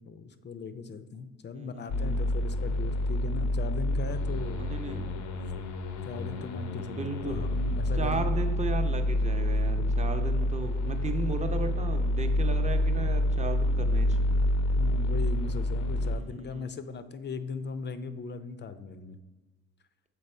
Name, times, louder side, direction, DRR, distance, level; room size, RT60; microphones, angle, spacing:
voice 1, 0.0-4.7 5.4-5.5 6.0-8.3 14.8-19.2, left 4 dB, 35° left, 11 dB, 0.5 m, -39 dB
voice 2, 1.5-2.2 4.6-5.1 6.8-7.4 8.0-14.4 16.5-16.8, right 3 dB, 25° right, 6 dB, 0.7 m, -35 dB
sound 1, 1.9-16.2, left 1 dB, 75° left, 0.7 m, -28 dB
6.8 x 4.5 x 4.4 m, 1.2 s
cardioid pair, 90°, 30 cm